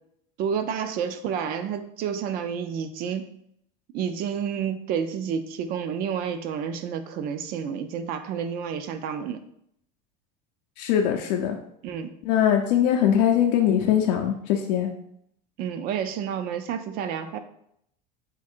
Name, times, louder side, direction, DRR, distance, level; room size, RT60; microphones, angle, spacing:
voice 1, 0.4-3.3 3.9-9.4 11.8-12.1 15.6-17.4, right 7 dB, 45° right, 9 dB, 0.4 m, -30 dB
voice 2, 10.8-11.6 12.3-14.9, left 9 dB, 85° left, 2 dB, 0.5 m, -21 dB
3.7 x 2.4 x 4.3 m, 0.71 s
cardioid pair, 150°, 21 cm